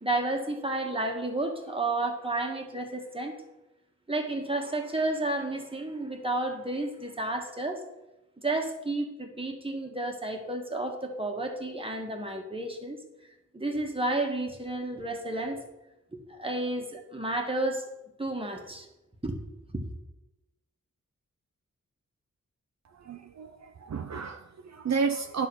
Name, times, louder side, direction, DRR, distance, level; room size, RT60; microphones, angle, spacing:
voice 1, 0.0-3.3 4.1-7.8 8.4-13.0 13.5-15.6 16.1-17.8 18.2-18.9 19.2-19.3, right 2 dB, 20° right, 2 dB, 1.4 m, -31 dB
voice 2, 22.9-25.5, right 5 dB, 65° right, 6 dB, 0.5 m, -32 dB
10.5 x 3.7 x 6.8 m, 0.96 s
wide cardioid pair, 80°, 30 cm